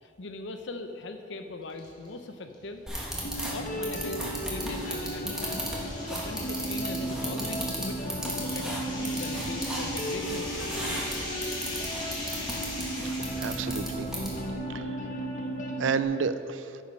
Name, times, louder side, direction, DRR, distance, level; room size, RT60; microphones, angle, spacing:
voice 1, 0.0-2.8 3.5-5.6 6.1-11.0, left 3 dB, 70° left, 7 dB, 0.7 m, -41 dB
sound 1, 1.7-2.1 2.5-2.6 3.6-13.8, left 1 dB, 25° left, 2.2 m, -41 dB
sound 2, 2.9-14.5, equal, 5° right, 1.5 m, -36 dB
sound 3, 3.2-16.0, right 1 dB, 45° left, 1.1 m, -35 dB
voice 2, 13.1-14.1 14.7-15.0 15.8-16.7, right 5 dB, 85° right, 13 dB, 0.4 m, -31 dB
9.3 x 7.0 x 5.5 m, 2.7 s
head